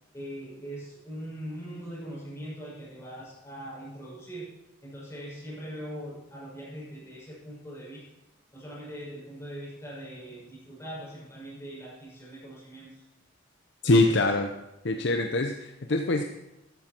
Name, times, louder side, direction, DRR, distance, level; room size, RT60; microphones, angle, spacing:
voice 1, 0.1-4.5 4.8-8.1 8.5-13.0 13.8-14.2, equal, 15° left, -6 dB, 6.3 m, -41 dB
voice 2, 13.8-14.5 14.8-16.2, left 2 dB, 60° left, 5 dB, 0.8 m, -24 dB
13.0 x 12.5 x 4.5 m, 0.95 s
head